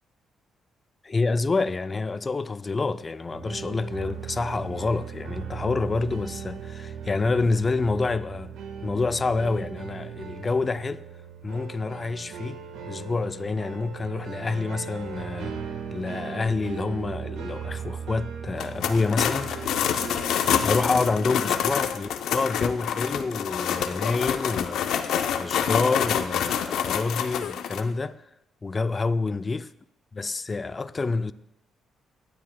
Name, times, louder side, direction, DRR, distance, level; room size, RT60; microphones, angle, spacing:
voice 1, 1.0-8.6 8.8-11.0 11.4-12.6 12.9-15.6 15.9-19.8 20.6-25.1 25.3-28.2 28.6-29.7 30.1-31.3, left 3 dB, 30° left, 0.4 m, -27 dB
sound 1, 3.3-21.6, right 6 dB, 85° right, 1.4 m, -38 dB
sound 2, 18.5-27.8, left 8 dB, 80° left, 0.7 m, -27 dB
17.5 x 10.0 x 2.3 m
cardioid pair, 90°, 0 cm